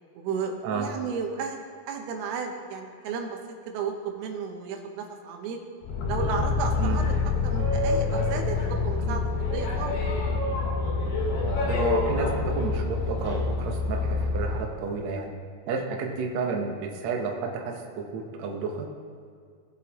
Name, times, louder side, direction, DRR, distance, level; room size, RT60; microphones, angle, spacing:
voice 1, 0.1-3.4 3.7-5.6 6.1-7.1 7.4-10.1, right 5 dB, 90° right, 4 dB, 3.0 m, -33 dB
Boat Water vehicle, 5.8-14.7, left 4 dB, 65° left, 3.3 m, -26 dB
voice 2, 11.7-15.3 15.7-19.0, right 4 dB, 65° right, 1 dB, 1.8 m, -31 dB
18.5 x 7.7 x 3.0 m, 2.1 s
omnidirectional pair, 4.5 m